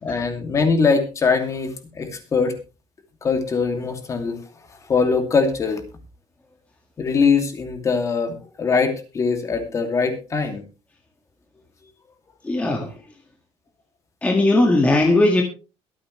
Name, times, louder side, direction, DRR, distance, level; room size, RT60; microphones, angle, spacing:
voice 1, 0.0-2.5 3.2-4.4 4.9-5.8 7.0-10.6, left 5 dB, 30° left, 6 dB, 2.6 m, -22 dB
voice 2, 12.4-12.9 14.2-15.4, left 2 dB, 10° left, 2 dB, 1.8 m, -18 dB
23.0 x 8.5 x 3.2 m, 0.32 s
cardioid pair, 155°, 11 cm